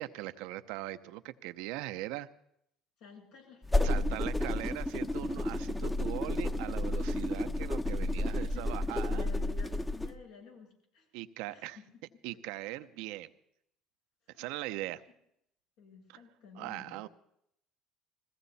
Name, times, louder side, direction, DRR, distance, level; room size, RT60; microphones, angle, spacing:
voice 1, 0.0-2.3 3.8-9.3 11.1-11.8 12.2-13.3 14.4-15.0 16.1-16.2 16.6-17.1, right 16 dB, 80° right, 11 dB, 0.8 m, -40 dB
voice 2, 3.0-4.6 8.2-11.1 11.5-11.9 14.3-14.5 15.8-17.0, left 5 dB, 80° left, -2 dB, 7.7 m, -53 dB
sound 1, 3.6-10.1, left 1 dB, 10° left, 0.9 m, -31 dB
21.0 x 16.5 x 4.2 m, 0.74 s
supercardioid pair, 95°, 0 cm